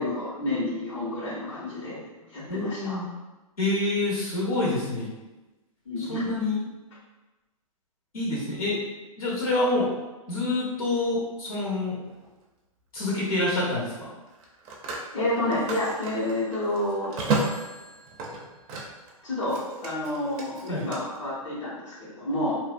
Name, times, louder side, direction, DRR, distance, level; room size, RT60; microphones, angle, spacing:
voice 1, 0.0-2.0 2.3-3.0 5.9-6.2 15.1-17.1 19.2-22.6, left 1 dB, 60° left, -9 dB, 1.1 m, -29 dB
voice 2, 2.5-3.1 3.6-5.1 6.0-6.6 8.1-8.8 9.2-9.9 10.3-12.0 12.9-14.1 20.7-20.9, left 2 dB, 80° left, -7 dB, 1.3 m, -27 dB
Telephone, 12.1-12.3 14.3-19.1 19.4-21.0, right 3 dB, 25° right, 0.4 m, -33 dB
2.5 x 2.1 x 2.5 m, 1.1 s
hypercardioid pair, 125°, 18 cm